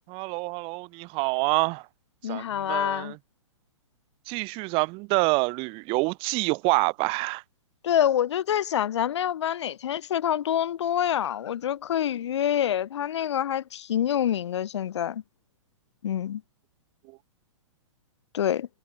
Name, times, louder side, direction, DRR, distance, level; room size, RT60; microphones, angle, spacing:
voice 1, 0.1-1.8 2.3-3.2 4.3-7.4, right 27 dB, 35° right, 2.5 m, -27 dB
voice 2, 2.2-3.1 7.8-15.2 16.0-16.4 18.3-18.7, left 10 dB, 60° left, 7.8 m, -26 dB
figure-of-eight pair, 120°, 17 cm